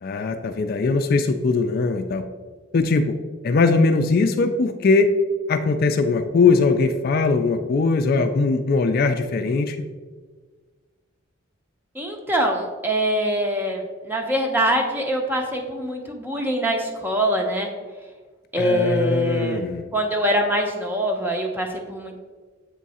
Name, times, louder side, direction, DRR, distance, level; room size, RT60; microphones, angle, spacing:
voice 1, 0.0-2.2 2.7-3.1 3.4-5.1 5.5-9.8 18.6-19.9, left 4 dB, 45° left, 7 dB, 0.3 m, -20 dB
voice 2, 11.9-17.7 18.5-19.6 19.9-22.2, equal, 10° right, 2 dB, 0.7 m, -24 dB
7.5 x 3.6 x 4.1 m, 1.4 s
head